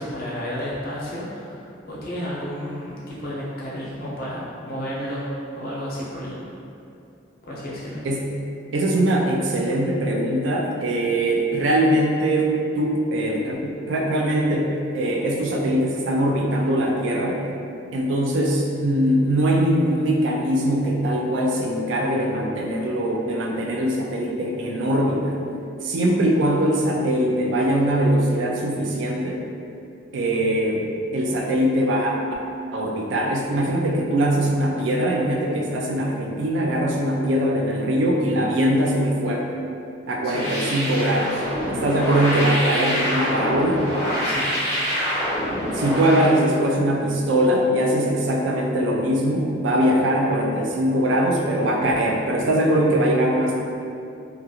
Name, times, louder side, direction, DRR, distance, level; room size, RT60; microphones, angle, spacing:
voice 1, 0.0-6.5 7.4-8.1 40.2-40.5 44.2-44.6, equal, 50° left, -7 dB, 0.6 m, -32 dB
voice 2, 8.7-17.4 17.9-25.4 25.8-29.4 30.1-32.2 32.7-39.5 40.1-43.8 45.7-53.6, right 1 dB, 85° right, -1 dB, 0.4 m, -22 dB
sound 1, 40.3-46.3, equal, 15° left, 0.7 m, -26 dB
2.4 x 2.3 x 2.8 m, 2.6 s
head